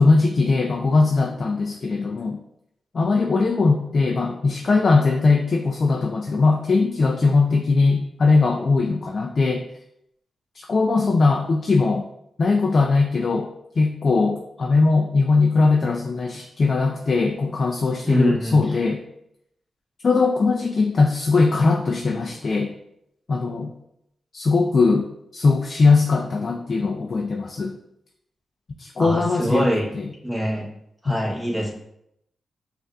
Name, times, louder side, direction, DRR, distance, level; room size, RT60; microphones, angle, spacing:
voice 1, 0.0-2.4 2.9-9.6 10.6-12.0 12.4-13.5 13.8-19.0 20.0-22.7 23.3-23.7 24.3-25.1 25.3-27.7 28.8-29.7 29.9-30.1 31.1-31.2, left 3 dB, 55° left, 2 dB, 0.3 m, -20 dB
voice 2, 18.0-18.6 29.0-29.9 30.2-30.7 31.0-31.7, equal, 10° right, -2 dB, 1.0 m, -23 dB
5.1 x 2.5 x 2.3 m, 0.78 s
cardioid pair, 55°, 0 cm